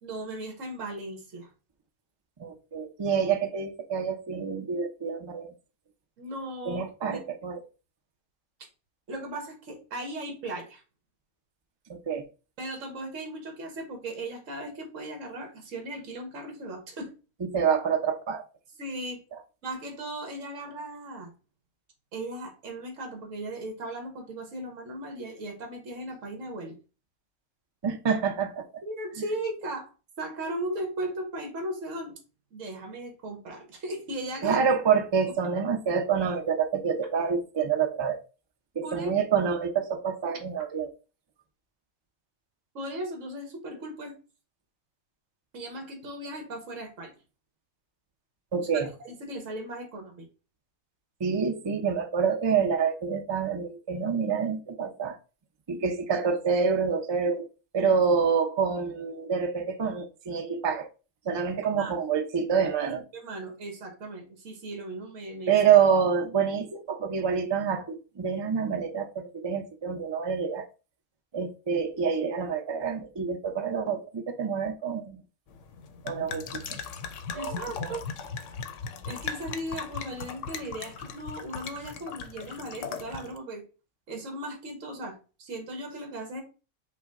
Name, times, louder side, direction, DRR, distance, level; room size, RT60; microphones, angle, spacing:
voice 1, 0.0-1.5 6.2-7.2 9.1-10.8 12.6-17.1 18.8-19.2 19.6-21.3 22.1-26.8 28.8-29.9 30.2-32.1 32.5-34.6 38.8-39.1 42.7-44.1 45.5-47.1 48.6-50.3 61.8-61.9 63.1-65.6 77.3-78.0 79.0-83.6 84.1-86.4, right 1 dB, 60° right, 3 dB, 1.6 m, -37 dB
voice 2, 2.4-5.5 6.7-7.6 11.9-12.2 17.4-18.4 27.8-28.7 34.4-38.2 38.7-40.9 48.5-48.9 51.2-55.2 55.7-57.5 57.7-60.9 61.2-63.0 65.5-70.7 71.3-75.2 76.0-76.8 77.3-77.6 77.8-78.0, right 6 dB, 45° right, 5 dB, 0.3 m, -27 dB
sound 1, 75.5-83.4, left 5 dB, 65° left, 0.9 m, -38 dB
5.6 x 2.2 x 3.7 m, 0.33 s
omnidirectional pair, 1.5 m